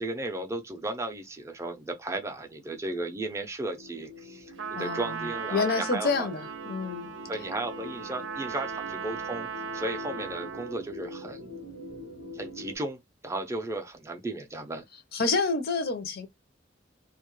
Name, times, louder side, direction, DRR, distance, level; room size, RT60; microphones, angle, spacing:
voice 1, 0.0-6.3 7.3-9.5 9.7-11.5 12.3-14.8, right 2 dB, 15° right, 0.4 m, -35 dB
sound 1, 3.7-12.8, left 1 dB, 80° left, 0.9 m, -44 dB
Trumpet, 4.6-10.8, right 7 dB, 85° right, 0.6 m, -38 dB
voice 2, 4.8-7.1 15.1-16.3, left 4 dB, 55° left, 0.5 m, -28 dB
2.2 x 2.0 x 3.0 m
head